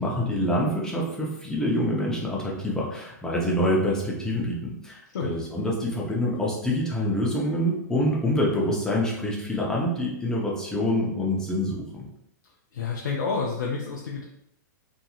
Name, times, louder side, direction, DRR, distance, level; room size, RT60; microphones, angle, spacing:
voice 1, 0.0-12.1, left 1 dB, 5° left, -4 dB, 0.7 m, -26 dB
voice 2, 12.7-14.2, left 5 dB, 90° left, -2 dB, 0.5 m, -29 dB
2.9 x 2.6 x 2.3 m, 0.78 s
hypercardioid pair, 140°, 10 cm